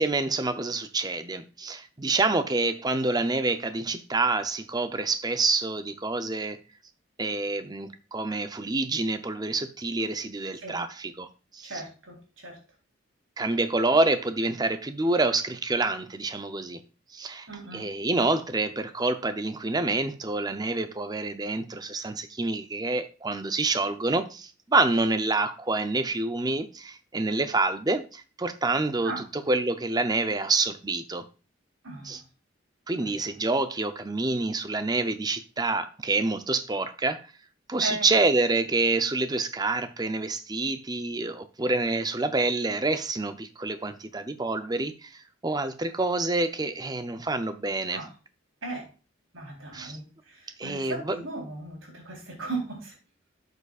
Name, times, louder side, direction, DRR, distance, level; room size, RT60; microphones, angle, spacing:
voice 1, 0.0-6.6 7.2-11.8 13.4-16.8 17.1-31.2 32.0-32.2 32.9-37.2 37.7-48.0 49.7-50.0 50.6-51.2, right 3 dB, 20° right, 0.6 m, -27 dB
voice 2, 11.6-12.2 12.4-12.6 17.5-17.9 29.0-29.2 31.8-32.2 33.0-33.1 37.8-38.1 47.9-48.0 48.6-48.8 49.3-50.0 50.6-52.9, right 2 dB, 80° right, 3.6 m, -36 dB
12.0 x 6.7 x 2.4 m
head